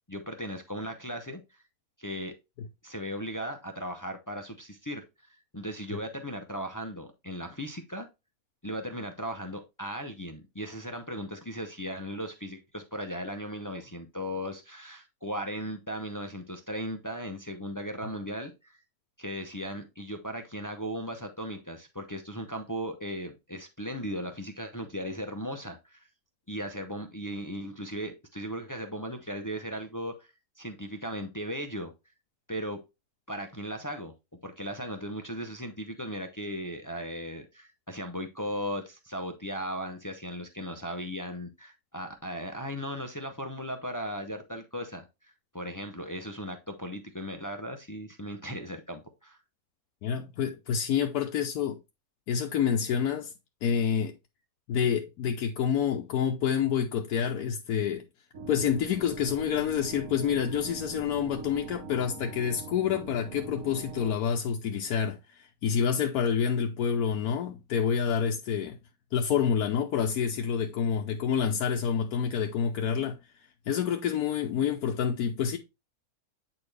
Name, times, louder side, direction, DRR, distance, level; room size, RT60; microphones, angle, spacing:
voice 1, 0.1-1.6 2.0-2.3 2.8-8.1 8.6-18.8 19.2-26.1 26.5-30.3 30.6-31.9 32.5-32.8 33.3-34.1 34.4-49.4, equal, 25° left, 0.4 m, -37 dB
voice 2, 50.0-51.8 52.3-53.3 53.6-54.1 54.7-58.0 58.5-68.8 69.1-73.2 73.7-75.6, left 7 dB, 85° left, 1.2 m, -28 dB
sound 1, 58.3-64.2, right 4 dB, 60° right, 1.2 m, -42 dB
8.6 x 4.3 x 3.3 m
omnidirectional pair, 1.6 m